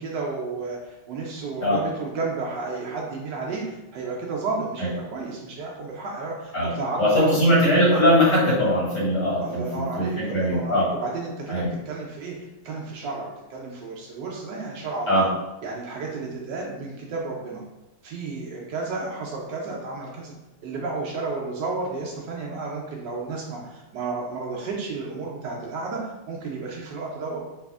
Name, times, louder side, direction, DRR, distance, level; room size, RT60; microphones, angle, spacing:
voice 1, 0.0-8.0 9.4-15.3 15.6-17.6 18.0-20.3 20.6-26.0 26.3-27.4, right 3 dB, 75° right, -2 dB, 1.0 m, -32 dB
voice 2, 7.0-10.8 11.5-11.7 15.1-15.2, equal, 75° left, -9 dB, 2.5 m, -20 dB
4.1 x 2.4 x 2.3 m, 0.99 s
omnidirectional pair, 2.4 m